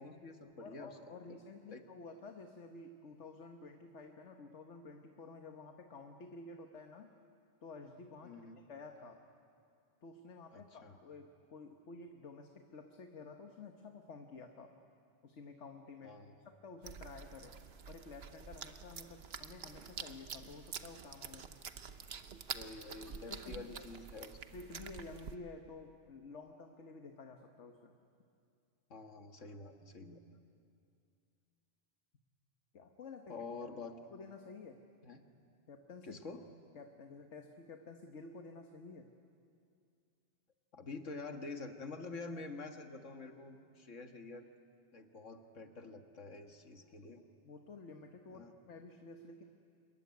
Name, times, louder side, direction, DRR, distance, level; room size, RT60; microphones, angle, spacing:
voice 1, 0.0-1.2 1.7-1.8 8.2-8.6 10.5-11.0 16.0-16.3 22.5-24.4 28.9-30.2 33.3-34.0 35.0-35.2 36.0-36.4 40.7-44.5 44.9-47.2 48.3-48.5, left 3 dB, 90° left, 5 dB, 2.0 m, -47 dB
voice 2, 0.6-7.1 7.6-9.2 10.0-14.7 15.2-16.2 16.4-17.6 17.9-21.5 23.3-23.8 24.5-28.0 32.7-33.3 34.1-34.8 35.7-36.2 36.7-39.1 47.4-49.4, left 3 dB, 70° left, 4 dB, 1.5 m, -51 dB
sound 1, 16.8-25.4, right 6 dB, 60° right, 1.2 m, -48 dB
26.5 x 22.0 x 9.6 m, 2.4 s
omnidirectional pair, 1.2 m